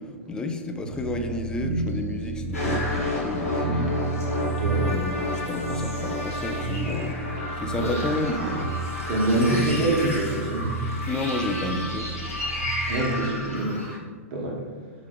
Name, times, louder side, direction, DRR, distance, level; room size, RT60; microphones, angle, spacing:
voice 1, 0.0-7.2 7.6-8.7 11.1-12.1, left 1 dB, 10° left, 4 dB, 0.4 m, -31 dB
sound 1, 0.8-13.3, right 3 dB, 85° right, 0.4 m, -32 dB
sound 2, 2.5-14.0, left 2 dB, 80° left, 1.2 m, -31 dB
voice 2, 9.1-10.7 12.9-13.9 14.3-14.6, right 1 dB, 45° right, -3 dB, 0.9 m, -25 dB
5.3 x 2.4 x 3.4 m, 1.5 s
figure-of-eight pair, 105°, 8 cm